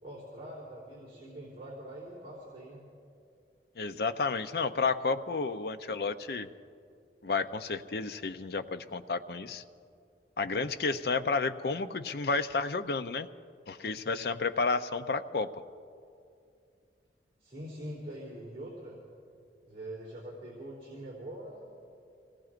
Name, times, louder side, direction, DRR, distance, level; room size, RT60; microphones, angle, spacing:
voice 1, 0.0-2.8 17.4-19.0 19.6-21.7, right 1 dB, 35° right, -8 dB, 3.2 m, -43 dB
voice 2, 3.8-6.5 7.2-9.6 10.4-13.3 13.7-15.5, left 4 dB, 60° left, 10 dB, 0.5 m, -31 dB
26.5 x 18.5 x 2.5 m, 2.4 s
head